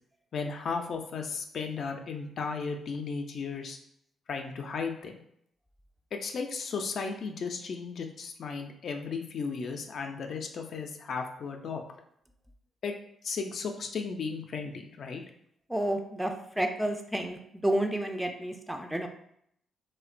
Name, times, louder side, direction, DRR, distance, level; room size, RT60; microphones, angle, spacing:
voice 1, 0.3-3.8 4.3-5.2 6.1-11.8 12.8-12.9 13.2-15.2, left 5 dB, 65° left, 4 dB, 0.3 m, -35 dB
voice 2, 15.7-16.3 16.6-17.4 17.6-19.1, right 1 dB, 5° right, 5 dB, 0.4 m, -30 dB
2.9 x 2.1 x 2.4 m, 0.70 s
supercardioid pair, 60°, 0 cm